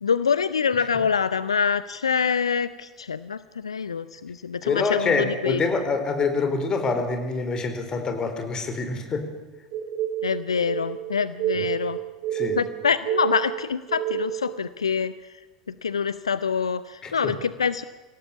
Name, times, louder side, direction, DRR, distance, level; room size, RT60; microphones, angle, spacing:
voice 1, 0.0-5.6 10.2-12.0 12.6-15.1 15.7-17.8, left 6 dB, 75° left, 15 dB, 0.6 m, -25 dB
voice 2, 4.6-9.3 11.5-11.7 12.3-12.6 17.0-17.3, left 4 dB, 25° left, 6 dB, 4.3 m, -26 dB
sound 1, 9.7-14.6, right 13 dB, 45° right, 2.5 m, -29 dB
26.0 x 17.0 x 7.3 m, 1.3 s
figure-of-eight pair, 80°, 3 cm